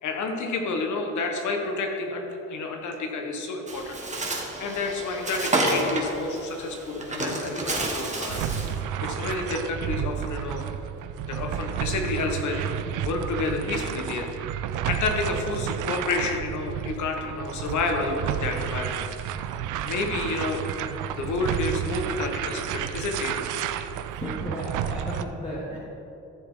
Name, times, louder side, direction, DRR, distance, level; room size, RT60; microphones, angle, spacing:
voice 1, 0.0-4.0 4.6-8.4 9.0-10.6 11.2-12.6 13.0-14.3 14.8-19.0 19.8-20.6 21.1-23.3, left 3 dB, 75° left, 3 dB, 1.5 m, -29 dB
Bird, 3.7-8.8, right 1 dB, 25° right, 1.6 m, -29 dB
sound 1, 8.3-25.2, right 9 dB, 85° right, 0.5 m, -31 dB
voice 2, 24.0-25.8, equal, 20° left, -5 dB, 1.8 m, -34 dB
14.0 x 7.1 x 3.9 m, 2.9 s
cardioid pair, 90°, 30 cm